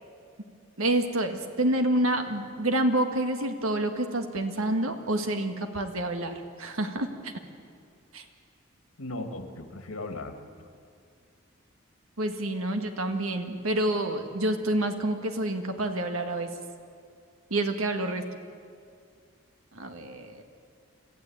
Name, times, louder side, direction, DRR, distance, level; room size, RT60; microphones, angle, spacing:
voice 1, 0.8-7.3 8.1-8.2 12.2-16.5 17.5-18.3 19.7-20.4, right 1 dB, 85° right, 6 dB, 1.9 m, -28 dB
voice 2, 9.0-10.7, left 2 dB, 90° left, 6 dB, 2.2 m, -37 dB
26.0 x 14.5 x 8.8 m, 2.3 s
head